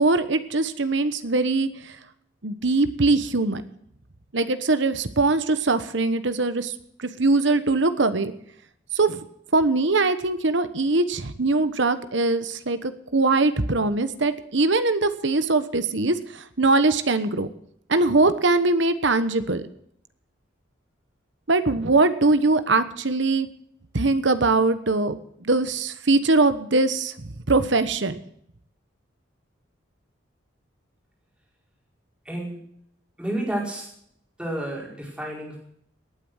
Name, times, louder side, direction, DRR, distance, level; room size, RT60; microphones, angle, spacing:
voice 1, 0.0-2.0 2.4-3.6 4.3-6.7 7.0-8.3 8.9-9.2 9.5-17.5 17.9-19.6 21.5-23.5 23.9-28.2, right 3 dB, 65° right, 11 dB, 1.2 m, -22 dB
voice 2, 32.2-32.6 33.2-33.9 34.4-35.6, right 1 dB, 5° right, -3 dB, 5.0 m, -30 dB
18.5 x 9.2 x 6.4 m, 0.70 s
head